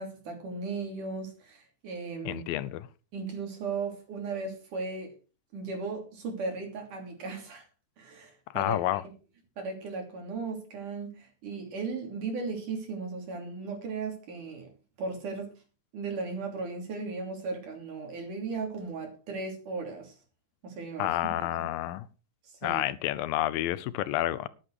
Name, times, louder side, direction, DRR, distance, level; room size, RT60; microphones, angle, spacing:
voice 1, 0.0-2.4 3.1-5.1 5.5-7.6 8.0-8.8 9.6-14.7 15.0-15.5 15.9-20.1 20.6-21.7 22.6-22.8, right 4 dB, 65° right, 4.6 m, -36 dB
voice 2, 2.3-2.9 8.5-9.0 21.0-22.1 22.6-24.5, left 14 dB, 85° left, 2.5 m, -29 dB
12.0 x 11.0 x 4.8 m
omnidirectional pair, 4.0 m